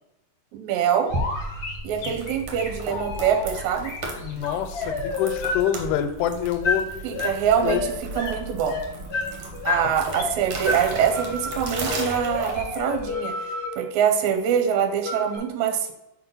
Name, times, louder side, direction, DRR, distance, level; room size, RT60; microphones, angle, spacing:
voice 1, 0.5-1.1 1.8-3.9 7.0-7.9 8.2-8.8 9.7-13.4 13.8-15.9, right 8 dB, 80° right, 6 dB, 1.8 m, -24 dB
sound 1, 1.0-5.6 6.6-6.8 7.1-8.3 8.6-10.3 10.6-10.8 11.1-13.7 15.0-15.4, left 3 dB, 60° left, 1.0 m, -30 dB
sound 2, 1.1-13.1, right 2 dB, 60° right, 1.5 m, -35 dB
voice 2, 4.2-6.9 7.6-7.8, left 10 dB, 85° left, 9 dB, 2.1 m, -26 dB
4.5 x 4.2 x 5.4 m, 0.91 s
omnidirectional pair, 3.6 m